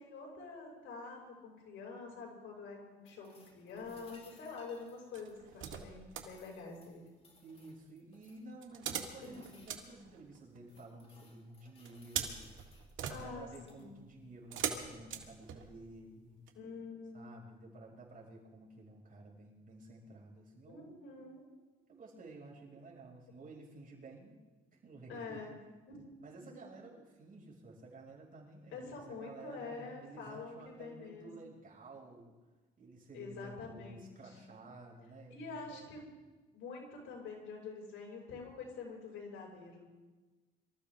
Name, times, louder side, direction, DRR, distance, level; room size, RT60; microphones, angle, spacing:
voice 1, 0.0-7.1 9.2-9.6 13.1-14.0 16.6-17.4 20.7-21.5 25.1-25.6 25.9-26.0 26.4-26.6 28.7-31.5 33.1-34.4 35.3-36.0 36.5-39.8, left 4 dB, 80° left, 0 dB, 5.6 m, -47 dB
sound 1, 3.0-5.9 6.2-8.5 9.1-9.9 10.4-12.9 13.4-13.9 15.9-16.0, left 3 dB, 30° left, 3.9 m, -65 dB
sound 2, 3.8-4.3 5.1-6.3 8.6-10.8 11.9-16.0 16.5-16.6, right 8 dB, 80° right, 1.8 m, -42 dB
voice 2, 7.4-12.7 13.0-16.4 17.1-20.9 21.9-24.4 24.7-25.4 26.2-32.3 32.8-35.9 39.4-39.5, right 2 dB, 45° right, -2 dB, 6.0 m, -53 dB
25.0 x 14.0 x 3.6 m, 1.2 s
cardioid pair, 90°, 20 cm